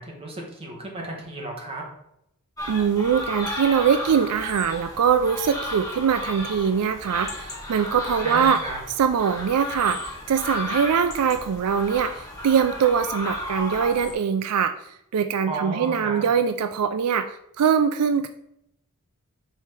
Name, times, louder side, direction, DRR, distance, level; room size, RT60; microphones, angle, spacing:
voice 1, 0.0-1.8 8.2-8.8 15.4-16.2, right 2 dB, 25° right, -1 dB, 1.7 m, -33 dB
sound 1, 2.6-14.1, left 1 dB, 15° left, 1.4 m, -34 dB
voice 2, 2.7-8.6 9.0-10.0 10.3-14.7 15.1-18.3, right 7 dB, 80° right, 10 dB, 0.4 m, -22 dB
5.5 x 4.3 x 4.8 m, 0.78 s
head